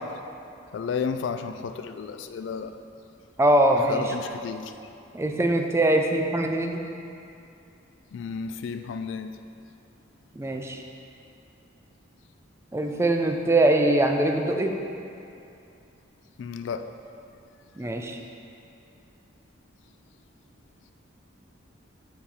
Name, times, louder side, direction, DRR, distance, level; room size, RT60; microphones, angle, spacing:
voice 1, 0.7-2.7 3.9-4.7 8.1-9.3 16.4-16.8, left 6 dB, 65° left, 8 dB, 0.3 m, -32 dB
voice 2, 3.4-4.1 5.1-6.8 10.3-10.8 12.7-14.7 17.8-18.2, right 1 dB, 15° right, 3 dB, 0.4 m, -22 dB
6.6 x 5.8 x 4.2 m, 2.7 s
head